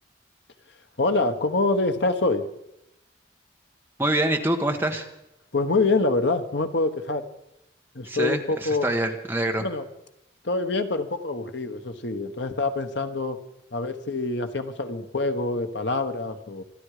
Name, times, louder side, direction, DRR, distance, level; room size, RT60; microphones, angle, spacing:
voice 1, 1.0-2.5 5.5-7.2 7.9-8.9 9.6-9.9 10.4-13.4 13.7-16.6, left 3 dB, 80° left, 8 dB, 1.3 m, -25 dB
voice 2, 4.0-5.1 8.0-9.6, right 1 dB, 10° right, 3 dB, 1.4 m, -25 dB
26.5 x 11.0 x 5.0 m, 0.85 s
head